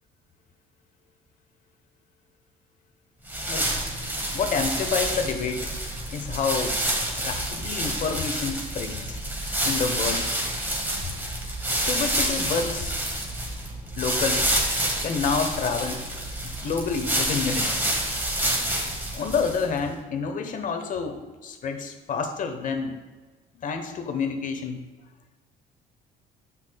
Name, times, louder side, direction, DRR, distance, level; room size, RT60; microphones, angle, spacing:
sound 1, 3.3-19.8, right 1 dB, 10° right, 1.6 m, -28 dB
voice 1, 4.3-5.7 6.1-6.8 7.2-9.2 9.6-10.3 11.9-13.0 14.0-14.5 15.0-16.0 16.6-17.8 19.1-23.0 23.6-24.8, left 5 dB, 50° left, 7 dB, 1.0 m, -28 dB
9.8 x 7.4 x 2.3 m, 1.3 s
cardioid pair, 110°, 17 cm